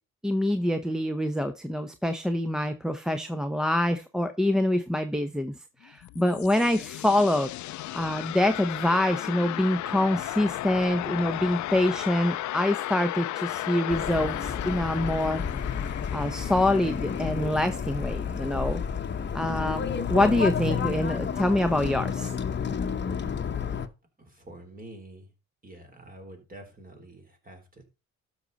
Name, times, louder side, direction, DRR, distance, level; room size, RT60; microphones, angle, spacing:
voice 1, 0.2-5.5 5.8-7.5 7.9-15.4 16.1-18.8 19.3-22.3, left 1 dB, ahead, 6 dB, 0.8 m, -26 dB
sound 1, 5.8-18.7, left 15 dB, 70° left, 0.6 m, -35 dB
sound 2, 13.9-23.9, left 6 dB, 35° left, 1.0 m, -31 dB
voice 2, 24.2-25.3 25.6-27.8, right 1 dB, 30° right, 4 dB, 3.7 m, -47 dB
12.5 x 6.3 x 4.1 m, 0.29 s
cardioid pair, 90°, 30 cm